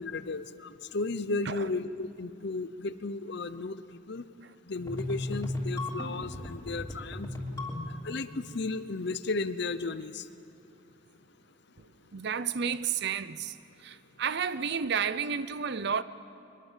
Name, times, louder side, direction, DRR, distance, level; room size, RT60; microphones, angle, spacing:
voice 1, 0.0-3.8 4.1-4.2 4.7-7.3 8.0-10.2, left 3 dB, 60° left, 0.8 m, -34 dB
sound 1, 4.7-8.2, left 1 dB, 15° left, 3.4 m, -35 dB
voice 2, 12.1-13.5 13.8-16.0, right 6 dB, 60° right, 0.6 m, -31 dB
23.0 x 21.5 x 7.4 m
head